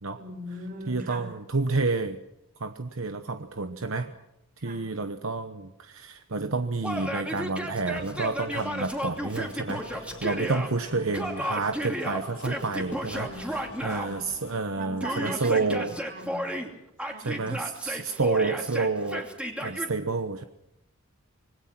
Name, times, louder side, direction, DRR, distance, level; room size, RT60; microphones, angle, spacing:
voice 1, 0.2-1.3 4.6-4.8 10.5-11.1 13.1-13.6 13.9-14.2 14.8-16.6 17.0-17.6 18.4-18.5, right 1 dB, 40° right, 4 dB, 5.4 m, -40 dB
voice 2, 0.9-2.2 2.6-4.1 4.6-15.9 17.2-19.3 19.6-20.4, right 3 dB, 70° right, 7 dB, 1.1 m, -29 dB
Yell, 6.8-10.7 11.1-14.1 15.0-16.7 17.0-19.9, equal, 5° right, 2.7 m, -33 dB
sound 1, 7.9-14.6, left 2 dB, 80° left, 4.5 m, -46 dB
26.0 x 20.5 x 6.1 m, 0.83 s
head